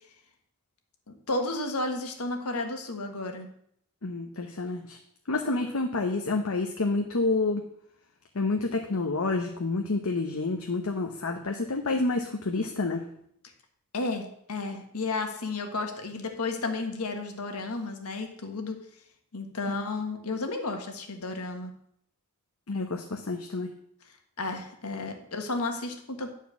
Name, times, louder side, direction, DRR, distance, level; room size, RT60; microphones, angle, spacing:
voice 1, 1.3-3.5 13.9-18.8 19.3-21.7 24.4-26.3, left 3 dB, 90° left, 4 dB, 1.5 m, -32 dB
voice 2, 4.0-5.0 5.3-7.6 8.3-13.1 22.7-23.7, left 3 dB, 70° left, 2 dB, 0.8 m, -29 dB
10.5 x 4.6 x 7.0 m, 0.71 s
head